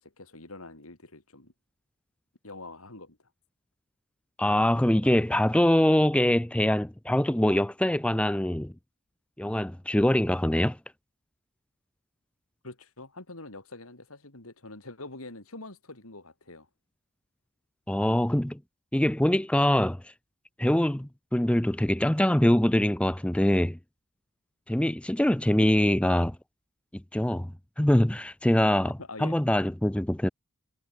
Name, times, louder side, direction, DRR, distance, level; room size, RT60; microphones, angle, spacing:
voice 1, 0.0-1.5 2.4-3.2 12.6-16.7 29.0-29.3, left 2 dB, 80° left, 4.0 m, -44 dB
voice 2, 4.4-8.7 9.4-10.8 17.9-18.6 18.9-20.0 20.6-23.8 24.7-26.4 27.1-27.5 27.8-30.3, left 1 dB, 5° left, 0.5 m, -24 dB
head